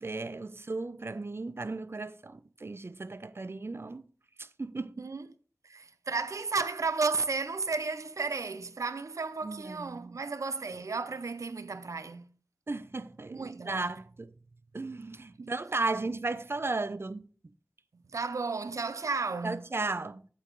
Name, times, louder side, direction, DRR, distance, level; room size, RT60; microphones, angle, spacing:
voice 1, 0.0-4.0 4.4-5.1 9.4-10.2 12.7-14.3 14.7-17.5 19.4-20.3, right 3 dB, 50° right, 0.6 m, -35 dB
voice 2, 5.6-12.3 13.3-13.9 15.4-15.5 18.1-19.7, right 4 dB, 85° right, 0.7 m, -33 dB
8.3 x 8.1 x 3.2 m
wide cardioid pair, 55°, 5 cm